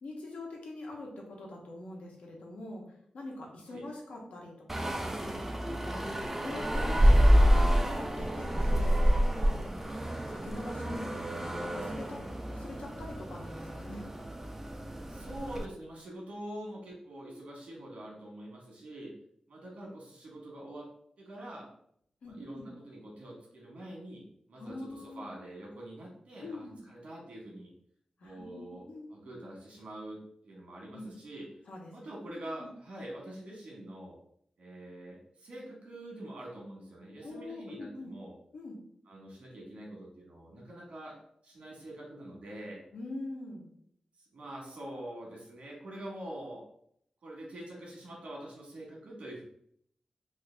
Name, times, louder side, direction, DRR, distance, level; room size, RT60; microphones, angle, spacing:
voice 1, 0.0-2.8 3.1-5.1 5.7-6.0 6.4-9.6 10.3-14.0 22.2-22.7 24.6-25.3 26.4-26.8 28.2-29.1 30.9-31.1 31.7-31.9 32.2-32.3 32.6-32.7 37.2-38.1 38.5-38.8 42.9-43.7, left 2 dB, 90° left, -1 dB, 1.0 m, -43 dB
sound 1, 4.7-15.7, equal, 15° right, 0.4 m, -28 dB
voice 2, 15.1-19.1 19.5-20.9 21.2-21.7 22.2-27.7 28.2-31.5 31.9-34.2 34.6-38.3 39.1-41.2 41.4-42.8 44.2-46.6 47.2-49.4, right 1 dB, 70° right, -2 dB, 1.4 m, -45 dB
3.2 x 2.7 x 3.3 m, 0.69 s
wide cardioid pair, 125°, 2 cm